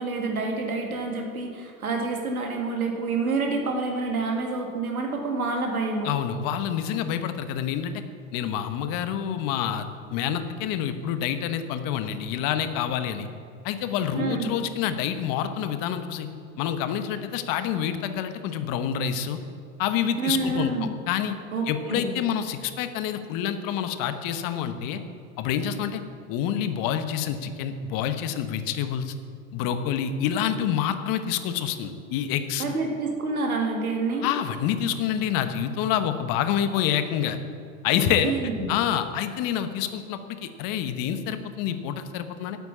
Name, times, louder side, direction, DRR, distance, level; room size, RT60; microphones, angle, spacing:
voice 1, 0.0-6.1 14.1-14.5 20.2-20.9 21.5-22.2 32.6-34.3 37.9-38.7, right 3 dB, 90° right, 2 dB, 2.1 m, -28 dB
voice 2, 6.0-8.0 8.3-13.3 13.6-16.3 16.6-19.4 19.8-21.3 21.7-25.0 25.4-26.0 26.3-29.1 29.5-32.6 34.2-37.4 37.8-38.3 38.7-42.6, left 9 dB, 50° left, 10 dB, 1.1 m, -27 dB
9.1 x 8.2 x 8.7 m, 2.5 s
hypercardioid pair, 85°, 42 cm